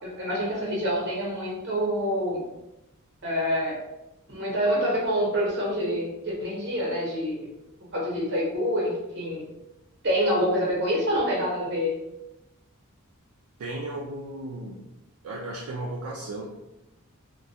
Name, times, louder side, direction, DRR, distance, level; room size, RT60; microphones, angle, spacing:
voice 1, 0.0-2.4 3.2-3.8 4.3-7.5 7.9-9.4 10.0-12.0, equal, 55° right, -4 dB, 0.9 m, -26 dB
voice 2, 13.6-14.8 15.2-16.5, right 2 dB, 70° right, -2 dB, 0.3 m, -35 dB
2.2 x 2.2 x 2.6 m, 0.94 s
head